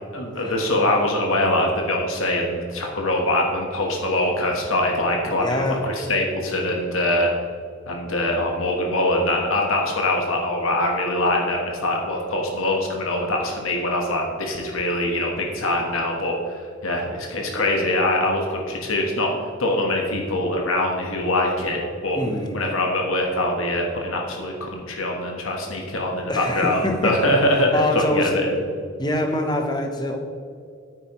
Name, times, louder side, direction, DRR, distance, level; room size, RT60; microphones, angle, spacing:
voice 1, 0.1-7.3 7.9-19.3 19.6-22.2 22.5-28.5, left 1 dB, 85° left, 1 dB, 1.3 m, -23 dB
voice 2, 5.4-5.8 22.1-22.6 26.3-27.3 27.7-28.4 29.0-30.2, left 1 dB, 20° left, 4 dB, 0.9 m, -25 dB
8.9 x 8.7 x 3.1 m, 2.3 s
head